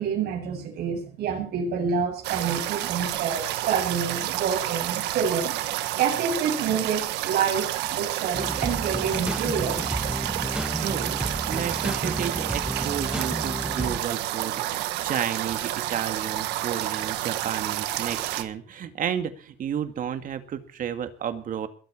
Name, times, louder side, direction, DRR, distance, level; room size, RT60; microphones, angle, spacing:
voice 1, 0.0-5.6 6.0-9.9 17.5-17.6, right 6 dB, 70° right, 2 dB, 7.6 m, -28 dB
sound 1, 2.2-18.4, right 14 dB, 90° right, 1.6 m, -30 dB
sound 2, 8.3-14.0, right 1 dB, 5° right, 2.1 m, -31 dB
voice 2, 10.8-11.2 11.5-21.7, right 8 dB, 55° right, 9 dB, 2.2 m, -32 dB
21.5 x 8.3 x 6.2 m, 0.41 s
cardioid pair, 110°, 17 cm